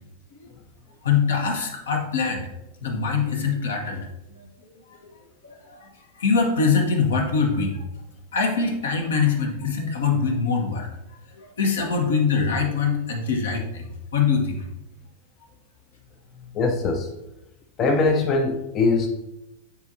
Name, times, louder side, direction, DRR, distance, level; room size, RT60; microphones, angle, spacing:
voice 1, 1.0-2.5 2.8-4.0 4.3-4.5 5.0-5.1 5.4-5.9 6.2-7.8 8.3-10.9 11.3-13.9 14.1-14.6, left 5 dB, 65° left, 3 dB, 1.2 m, -23 dB
voice 2, 16.5-17.1 17.8-19.1, left 3 dB, 30° left, 4 dB, 0.7 m, -21 dB
9.8 x 4.5 x 2.7 m, 0.90 s
figure-of-eight pair, 90°, 0 cm